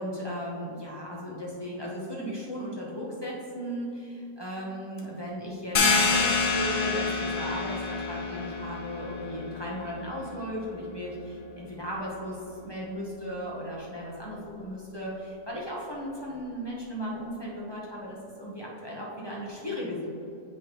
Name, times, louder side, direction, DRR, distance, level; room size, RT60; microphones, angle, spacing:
voice 1, 0.0-20.1, equal, 25° left, -5 dB, 0.6 m, -36 dB
sound 1, 5.7-11.1, left 4 dB, 55° left, 0.8 m, -28 dB
7.4 x 5.2 x 3.0 m, 2.9 s
omnidirectional pair, 1.6 m